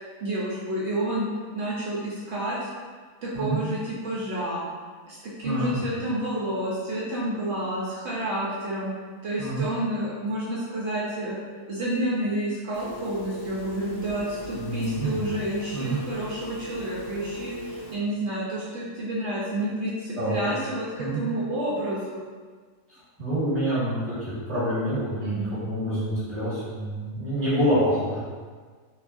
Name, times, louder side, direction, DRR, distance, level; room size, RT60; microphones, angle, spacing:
voice 1, 0.2-1.3 1.5-2.7 3.2-4.6 5.1-8.9 9.2-22.2 25.2-25.6, right 1 dB, 70° right, -7 dB, 0.6 m, -30 dB
voice 2, 5.4-5.8 9.4-9.7 14.5-15.2 15.7-16.0 20.1-20.4 21.0-21.2 22.9-28.2, right 1 dB, 10° right, -13 dB, 1.2 m, -27 dB
Telephone, 12.7-17.9, right 1 dB, 90° left, 1.2 m, -38 dB
2.8 x 2.3 x 2.5 m, 1.5 s
omnidirectional pair, 1.7 m